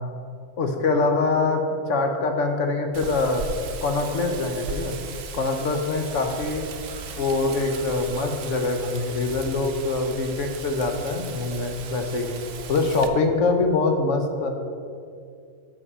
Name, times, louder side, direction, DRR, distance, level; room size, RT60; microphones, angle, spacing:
voice 1, 0.6-1.6 1.9-3.4 3.8-4.9 5.3-6.6 7.2-12.3 12.7-14.5, left 3 dB, 70° left, 5 dB, 1.1 m, -24 dB
Wind, 2.9-13.1, right 5 dB, 60° right, 0.7 m, -37 dB
7.1 x 5.7 x 5.4 m, 2.3 s
omnidirectional pair, 1.3 m